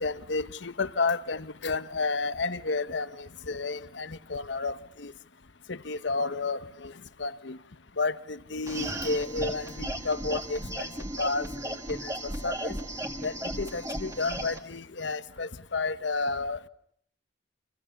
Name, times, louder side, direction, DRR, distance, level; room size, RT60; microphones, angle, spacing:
voice 1, 0.0-5.1 5.7-6.9 7.2-7.6 8.0-10.9 11.2-12.8 13.2-16.7, left 3 dB, 65° left, 1.1 m, -31 dB
sound 1, 8.7-14.6, right 1 dB, 15° right, 2.0 m, -35 dB
29.5 x 27.5 x 7.1 m
head